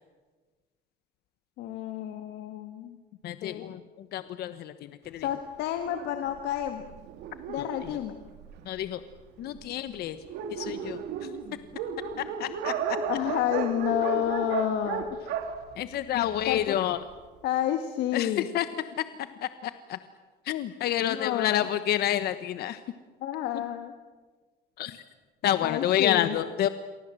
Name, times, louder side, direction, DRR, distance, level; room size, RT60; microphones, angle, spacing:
voice 1, 1.6-3.0 3.4-3.7 5.2-6.8 7.5-8.1 13.1-15.1 16.5-16.8 17.4-18.5 21.0-21.6 23.2-23.9 25.6-26.3, left 11 dB, 85° left, 7 dB, 1.8 m, -30 dB
voice 2, 3.2-5.3 7.6-8.0 8.6-9.0 9.4-10.2 10.5-11.3 12.2-13.0 15.8-17.0 18.1-18.7 19.0-19.1 19.4-20.0 20.4-22.8 24.8-25.0 25.4-26.7, left 12 dB, 70° left, 11 dB, 1.2 m, -29 dB
Dog, 5.9-8.8 9.5-9.6 9.9-10.0 10.2-16.6, right 6 dB, 90° right, 3.0 m, -34 dB
29.5 x 24.0 x 7.8 m, 1.4 s
cardioid pair, 110°, 17 cm